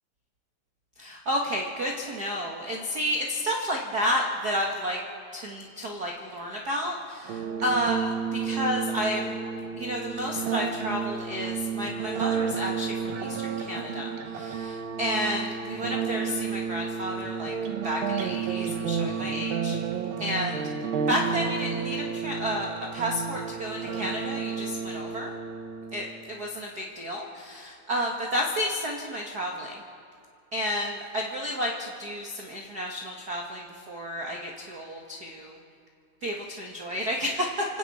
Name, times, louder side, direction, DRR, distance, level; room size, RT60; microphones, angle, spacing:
voice 1, 1.0-5.0 5.3-9.3 9.8-17.5 17.8-19.8 20.2-20.6 21.1-25.3 25.9-29.8 30.5-35.6 36.2-37.6, equal, 45° right, 0 dB, 1.3 m, -31 dB
sound 1, 7.3-26.2, right 6 dB, 80° right, 2.8 m, -31 dB
29.5 x 26.5 x 4.3 m, 2.4 s
omnidirectional pair, 4.0 m